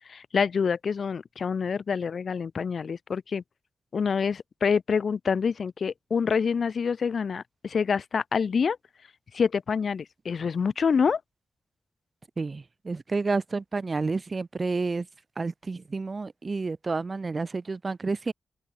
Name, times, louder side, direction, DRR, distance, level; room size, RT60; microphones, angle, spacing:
voice 1, 0.0-3.4 3.9-8.8 9.3-11.2, left 6 dB, 60° left, 1.3 m, -26 dB
voice 2, 12.4-15.1 15.4-18.3, right 3 dB, 35° right, 1.5 m, -30 dB
open air
cardioid pair, 90°, 0 cm